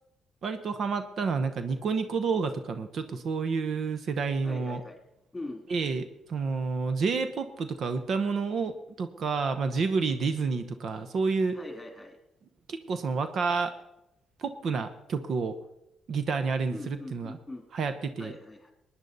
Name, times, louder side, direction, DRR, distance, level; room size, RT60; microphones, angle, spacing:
voice 1, 0.4-4.8 5.7-11.6 12.7-13.7 14.4-15.5 16.1-17.3 17.7-18.3, right 4 dB, 60° right, 10 dB, 0.9 m, -29 dB
voice 2, 4.4-5.0 5.3-5.6 11.5-12.2 16.7-17.7 18.2-18.7, left 2 dB, 15° left, 3 dB, 2.9 m, -42 dB
20.0 x 9.8 x 4.1 m, 0.88 s
cardioid pair, 90°, 0 cm